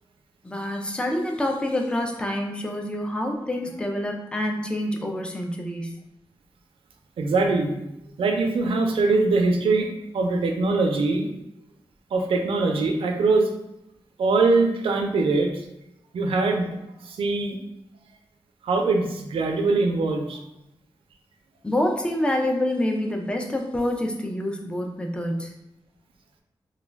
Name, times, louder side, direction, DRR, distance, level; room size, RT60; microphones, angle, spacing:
voice 1, 0.4-6.0 21.6-25.5, left 1 dB, 10° left, 2 dB, 0.3 m, -27 dB
voice 2, 7.2-7.7 8.2-9.9 10.1-11.3 12.1-13.5 14.2-15.7 16.1-17.6 18.6-20.4, right 3 dB, 90° right, 3 dB, 0.4 m, -22 dB
2.2 x 2.1 x 3.3 m, 0.86 s
wide cardioid pair, 155°, 9 cm